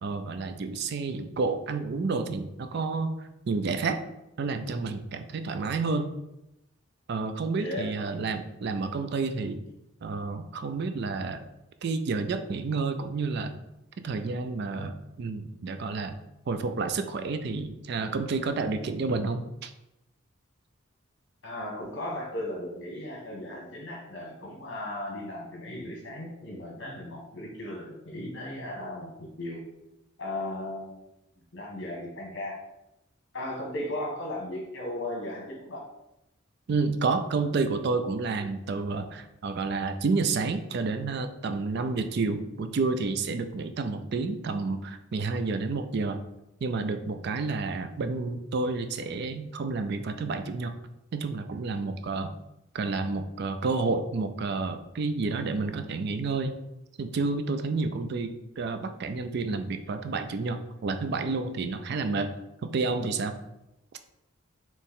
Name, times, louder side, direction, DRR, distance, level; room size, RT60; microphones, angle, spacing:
voice 1, 0.0-3.2 3.5-4.0 4.4-6.1 7.1-9.6 10.0-11.4 11.8-13.5 14.0-16.1 16.5-19.7 36.7-46.2 46.6-50.8 51.1-52.3 52.7-56.5 57.0-62.3 62.6-63.4, right 4 dB, 55° right, 8 dB, 0.4 m, -30 dB
voice 2, 7.6-8.0 21.4-29.1 29.4-29.6 30.2-31.0 31.5-32.6 33.3-35.8 43.7-44.0, left 1 dB, 60° left, -1 dB, 1.4 m, -36 dB
4.3 x 3.0 x 3.6 m, 0.89 s
head